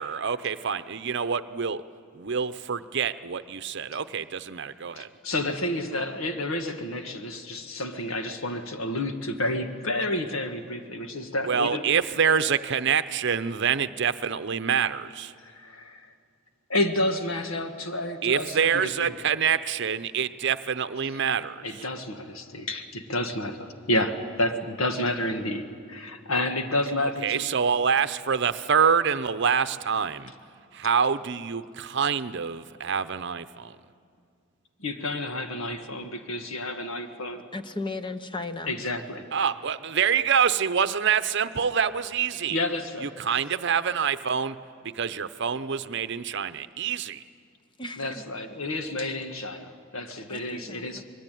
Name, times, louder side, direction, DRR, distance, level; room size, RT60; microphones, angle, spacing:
voice 1, 0.0-1.8 2.1-5.1 11.4-15.3 18.2-21.9 27.0-30.3 30.7-33.8 39.3-42.6 43.0-47.2, right 7 dB, 60° right, 12 dB, 0.7 m, -26 dB
voice 2, 4.9-11.8 15.5-16.1 16.7-18.7 19.0-19.1 21.6-25.6 25.9-27.4 34.8-37.4 38.7-39.2 42.5-43.1 48.0-51.0, left 1 dB, 80° left, 6 dB, 1.6 m, -30 dB
voice 3, 37.5-38.8 47.8-48.3 50.3-51.0, left 2 dB, 25° left, 9 dB, 0.9 m, -36 dB
25.0 x 21.0 x 9.2 m, 2.3 s
head